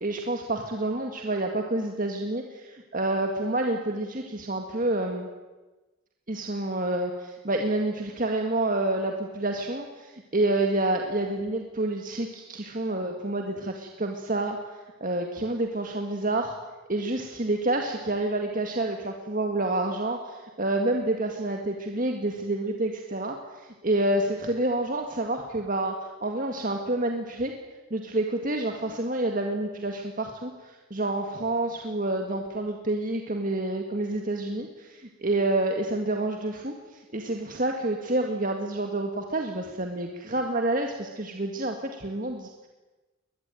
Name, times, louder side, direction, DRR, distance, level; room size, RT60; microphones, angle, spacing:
voice 1, 0.0-5.3 6.3-16.5 16.9-27.5 27.9-42.7, right 2 dB, 40° right, 3 dB, 2.0 m, -28 dB
22.5 x 20.5 x 9.3 m, 1.2 s
head